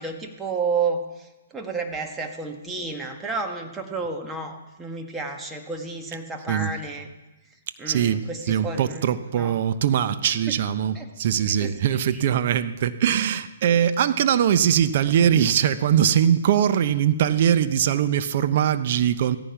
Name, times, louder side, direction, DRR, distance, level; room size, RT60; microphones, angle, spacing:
voice 1, 0.0-7.1 7.8-9.6 10.5-10.6 10.9-11.1 11.6-11.7 12.1-12.2, right 4 dB, 10° right, 3 dB, 1.7 m, -31 dB
voice 2, 7.9-19.4, right 9 dB, 50° right, 12 dB, 1.0 m, -21 dB
16.5 x 14.5 x 6.0 m, 1.0 s
hypercardioid pair, 130°, 0 cm